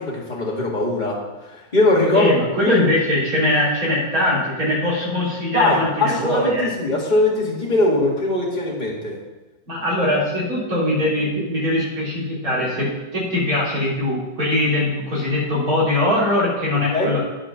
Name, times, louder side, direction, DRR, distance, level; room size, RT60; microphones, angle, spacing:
voice 1, 0.0-2.4 2.6-2.9 5.5-9.1 16.9-17.1, left 2 dB, 25° left, -4 dB, 2.1 m, -20 dB
voice 2, 2.1-6.7 9.7-12.9 13.1-17.2, left 1 dB, 55° right, -7 dB, 3.6 m, -21 dB
9.9 x 5.2 x 5.7 m, 1.1 s
omnidirectional pair, 1.8 m